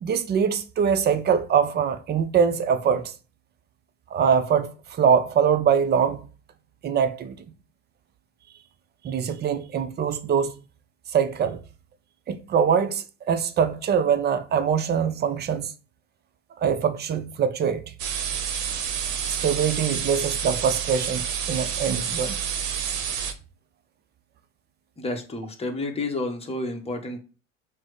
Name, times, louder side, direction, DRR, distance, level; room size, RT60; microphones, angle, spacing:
voice 1, 0.0-3.1 4.1-6.2 6.8-7.4 9.0-10.5 11.1-11.6 12.3-15.7 16.6-17.8 19.3-22.4, right 7 dB, 25° right, 0.5 m, -23 dB
sound 1, 18.0-23.3, right 8 dB, 60° right, 0.8 m, -29 dB
voice 2, 25.0-27.2, left 2 dB, 15° left, 1.0 m, -30 dB
6.0 x 2.1 x 3.0 m
hypercardioid pair, 70°, 39 cm